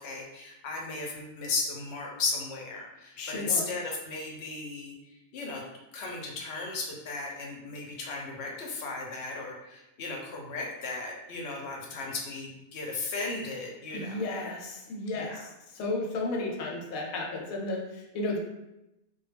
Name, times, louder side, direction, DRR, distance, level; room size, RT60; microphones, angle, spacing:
voice 1, 0.0-5.6 5.9-14.2 15.1-15.4, left 3 dB, 60° left, -1 dB, 0.7 m, -35 dB
voice 2, 3.2-3.7 13.9-15.5 15.7-18.4, left 2 dB, 85° left, -1 dB, 1.0 m, -33 dB
2.2 x 2.0 x 3.2 m, 0.93 s
omnidirectional pair, 1.4 m